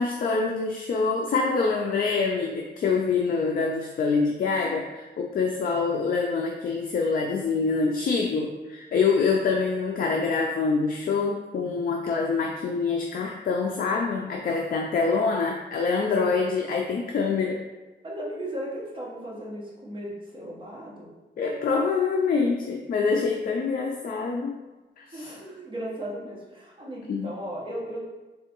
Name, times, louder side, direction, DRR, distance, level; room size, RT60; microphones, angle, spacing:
voice 1, 0.0-17.6 21.4-24.6 25.0-25.3 27.1-27.3, left 4 dB, 50° left, 1 dB, 0.4 m, -25 dB
voice 2, 18.0-21.1 25.1-28.0, right 1 dB, 25° right, -5 dB, 1.1 m, -36 dB
3.8 x 3.3 x 2.9 m, 1.1 s
wide cardioid pair, 145°, 19 cm